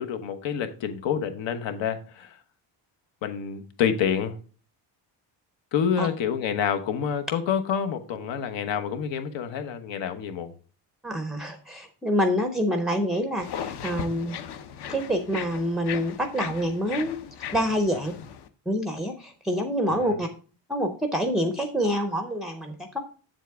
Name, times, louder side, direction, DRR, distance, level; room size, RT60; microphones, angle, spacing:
voice 1, 0.0-2.4 3.2-4.3 5.7-10.5, left 8 dB, 85° left, 1.2 m, -28 dB
voice 2, 11.0-14.4 14.9-17.2 17.5-18.1 18.7-20.3 20.7-23.0, equal, ahead, 0.4 m, -27 dB
sound 1, 13.4-18.5, left 9 dB, 65° left, 0.8 m, -37 dB
7.6 x 7.4 x 3.4 m
cardioid pair, 180°, 43 cm